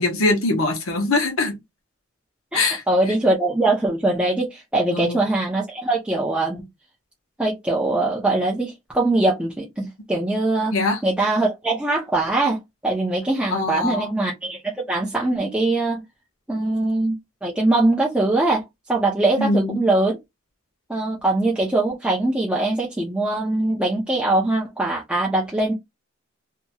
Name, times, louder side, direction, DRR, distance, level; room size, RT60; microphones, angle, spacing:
voice 1, 0.0-1.6 2.5-2.8 4.9-5.2 10.7-11.0 13.5-14.1 19.4-19.8, left 2 dB, 75° left, 1.0 m, -22 dB
voice 2, 2.5-6.6 7.4-10.7 11.0-16.0 16.5-17.2 17.4-18.6 18.9-20.1 20.9-25.7, right 2 dB, 5° right, 0.5 m, -22 dB
2.9 x 2.7 x 2.2 m
head